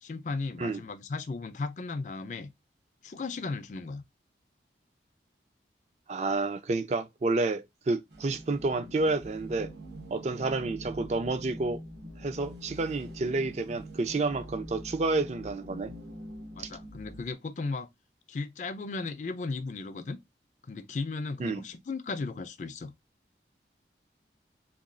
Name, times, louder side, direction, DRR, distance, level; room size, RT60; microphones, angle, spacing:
voice 1, 0.0-2.5 3.0-4.0 16.5-17.9 18.3-20.2 20.7-22.9, left 3 dB, 45° left, 0.4 m, -36 dB
voice 2, 6.1-9.7 10.1-11.8 12.2-15.9 16.6-16.7 21.4-21.6, right 3 dB, 40° right, 0.3 m, -30 dB
sound 1, 8.1-17.3, equal, 75° right, 0.8 m, -44 dB
2.9 x 2.3 x 2.5 m
head